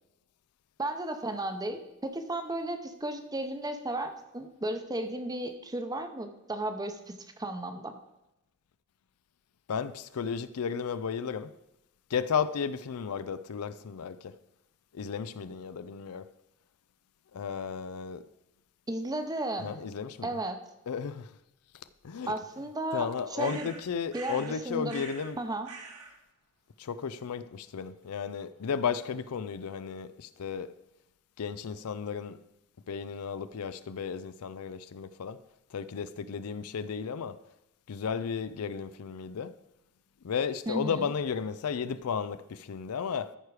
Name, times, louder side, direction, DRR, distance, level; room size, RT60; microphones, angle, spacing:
voice 1, 0.8-7.9 18.9-19.8 20.2-20.6 22.3-23.1 23.4-23.7 24.1-25.0 25.4-25.7 40.7-41.1, right 1 dB, 15° right, 0.8 m, -34 dB
voice 2, 9.7-11.5 12.1-14.4 14.9-16.3 17.3-18.2 19.6-20.4 20.9-21.3 21.7-22.3 22.9-25.4 26.8-30.7 31.4-32.4 32.9-35.4 35.7-37.4 37.9-39.6 40.2-43.4, left 6 dB, 80° left, 0.5 m, -34 dB
sound 1, 23.4-24.6 24.9-25.3 25.6-26.2, right 4 dB, 75° right, 1.4 m, -45 dB
14.5 x 4.8 x 4.8 m
head